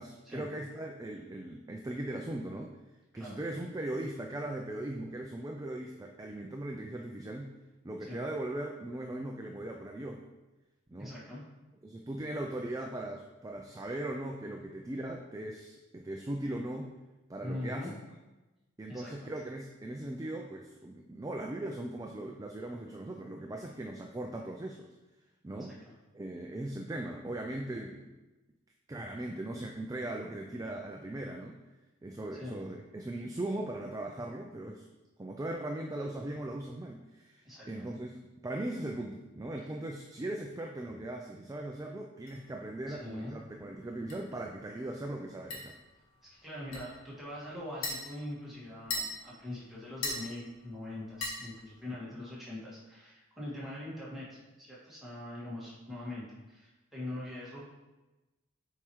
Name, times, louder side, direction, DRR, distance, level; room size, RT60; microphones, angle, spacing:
voice 1, 0.0-2.7 3.1-7.5 7.8-10.2 10.9-11.1 11.8-16.9 17.3-17.9 18.8-24.9 25.4-25.8 26.1-28.0 28.9-31.6 32.0-34.8 35.2-45.7, right 1 dB, 15° right, 1 dB, 0.4 m, -39 dB
voice 2, 11.0-11.4 17.4-17.9 18.9-19.3 25.7-25.9 32.4-32.6 37.5-37.8 42.9-43.3 46.4-57.7, left 1 dB, ahead, -9 dB, 1.9 m, -42 dB
sound 1, 42.3-52.0, left 2 dB, 85° left, 1.5 m, -43 dB
7.3 x 4.7 x 3.1 m, 1.1 s
head